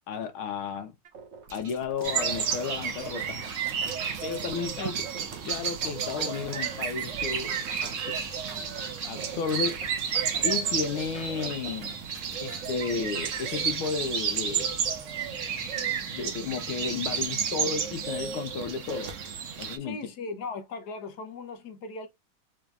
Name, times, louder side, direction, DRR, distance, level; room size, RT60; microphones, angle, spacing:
voice 1, 0.1-0.9 1.5-3.4 4.2-5.0 5.4-8.2 8.5-8.8 9.1-9.8 10.4-12.0 12.4-14.8 16.1-19.1 19.6-20.0, left 5 dB, 85° left, 1.7 m, -33 dB
sound 1, 1.0-13.9 14.6-15.1 15.7-15.8 16.1-16.7, right 4 dB, 45° right, 1.0 m, -46 dB
sound 2, 2.0-19.8, right 7 dB, 65° right, 0.7 m, -31 dB
sound 3, 3.1-17.2, equal, 15° right, 0.5 m, -52 dB
voice 2, 19.8-22.1, left 3 dB, 65° left, 1.1 m, -38 dB
4.4 x 3.2 x 2.3 m
omnidirectional pair, 2.3 m